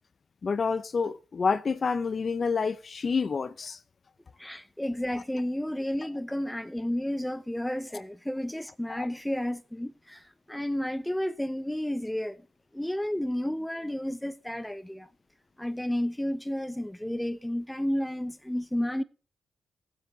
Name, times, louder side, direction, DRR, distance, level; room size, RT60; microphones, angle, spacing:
voice 1, 0.4-3.8 8.9-9.1, left 5 dB, 50° left, 0.7 m, -28 dB
voice 2, 4.4-12.4 12.7-15.1 15.6-19.0, left 1 dB, 5° left, 0.9 m, -31 dB
21.5 x 7.7 x 3.3 m
cardioid pair, 65°, 0 cm